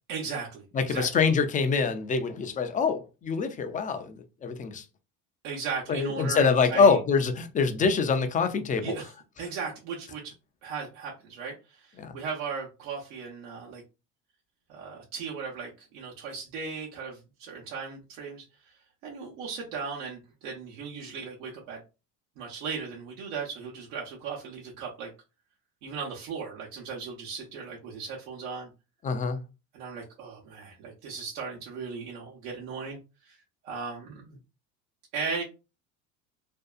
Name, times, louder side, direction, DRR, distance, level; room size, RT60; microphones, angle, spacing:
voice 1, 0.1-1.1 5.4-7.0 8.8-9.1 9.4-10.3 10.6-13.8 14.7-18.7 19.0-21.8 22.4-25.1 25.8-28.7 29.7-33.0 33.2-33.4 33.6-34.4 35.1-35.4, right 5 dB, 80° right, 0.9 m, -37 dB
voice 2, 0.7-4.8 5.9-8.9 12.0-12.1 29.0-29.4, left 5 dB, 20° left, 0.4 m, -25 dB
2.6 x 2.2 x 2.4 m
supercardioid pair, 90°, 38 cm